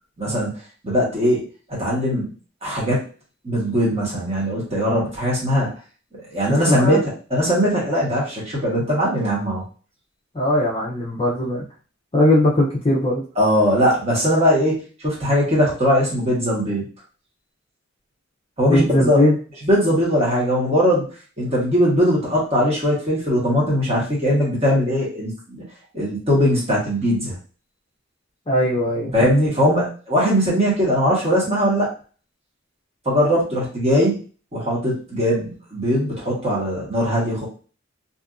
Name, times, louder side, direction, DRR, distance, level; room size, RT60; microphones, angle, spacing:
voice 1, 0.2-0.5 0.8-1.4 1.7-2.3 2.6-3.0 3.4-5.7 6.3-7.0 7.3-9.6 13.4-16.8 18.6-19.3 19.7-21.0 21.4-25.6 25.9-27.3 29.1-31.9 33.0-34.2 34.5-37.5, equal, 30° right, -5 dB, 1.1 m, -20 dB
voice 2, 6.7-7.0 10.3-11.6 12.1-13.2 18.6-19.3 28.5-29.2, left 1 dB, 25° left, -3 dB, 0.5 m, -19 dB
2.7 x 2.5 x 2.4 m, 0.38 s
head